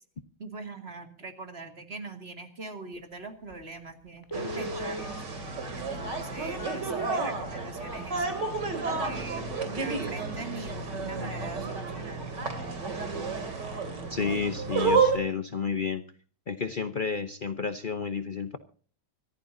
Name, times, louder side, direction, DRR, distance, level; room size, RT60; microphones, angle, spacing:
voice 1, 0.4-5.2 5.7-8.3 9.0-12.4, right 3 dB, 30° right, 6 dB, 2.4 m, -42 dB
Telephone, 3.5-3.6 4.2-9.1 9.6-9.7 10.1-10.3 10.6-10.9 11.3-11.4, left 2 dB, 10° left, 1.3 m, -41 dB
sound 1, 4.3-15.2, right 4 dB, 55° right, 3.5 m, -31 dB
voice 2, 14.1-16.0 16.5-18.6, left 5 dB, 85° left, 9 dB, 0.4 m, -31 dB
25.5 x 14.5 x 2.7 m, 0.41 s
omnidirectional pair, 2.2 m